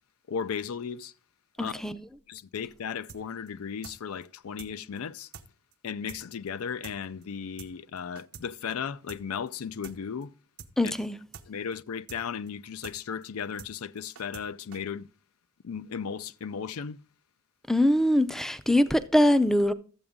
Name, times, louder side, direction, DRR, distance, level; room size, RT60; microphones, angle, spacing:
voice 1, 0.3-1.1 1.6-1.8 2.3-5.3 5.8-10.3 10.8-10.9 11.5-15.1 15.6-17.0, left 7 dB, 90° left, 0.5 m, -35 dB
voice 2, 1.6-2.0 10.8-11.2 17.7-19.7, left 1 dB, ahead, 0.4 m, -23 dB
sound 1, 3.1-3.2 3.5-3.6 3.8-4.0 4.2-4.3 4.6-4.7 5.0-5.1 5.3-5.5 5.7-5.8 6.1-6.2 6.5-6.6 6.8-7.0 7.2-7.3 7.6-7.7 8.0-8.5 8.7-8.8 9.1-9.2 9.5-9.6 9.8-10.0 10.2-10.3 10.6-10.7 11.0-11.1 11.3-11.5 11.7-11.8 12.1-12.2 12.5-12.6 12.8-13.0 13.2-13.3 13.6-13.7 14.0-14.5 14.7-14.8, right 6 dB, 80° right, 0.9 m, -45 dB
12.5 x 7.9 x 3.6 m
head